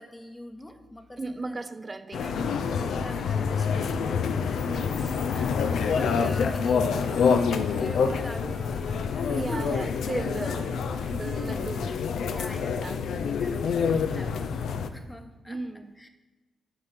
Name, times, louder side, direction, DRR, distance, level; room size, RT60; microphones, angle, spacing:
voice 1, 0.0-1.6 2.6-4.6 5.7-7.4 7.8-9.7 10.3-10.4 12.3-15.6 16.0-16.1, left 1 dB, 15° left, 7 dB, 0.9 m, -42 dB
voice 2, 1.2-3.1 4.7-5.6 9.3-12.1 12.8-13.1 15.5-15.9, right 3 dB, 30° right, 11 dB, 0.4 m, -37 dB
sound 1, 2.1-14.9, left 6 dB, 80° left, 0.5 m, -27 dB
Wind instrument woodwind instrument, 5.0-12.0, right 2 dB, 65° right, 1.5 m, -51 dB
7.8 x 4.3 x 5.2 m, 1.2 s
cardioid pair, 65°, 0 cm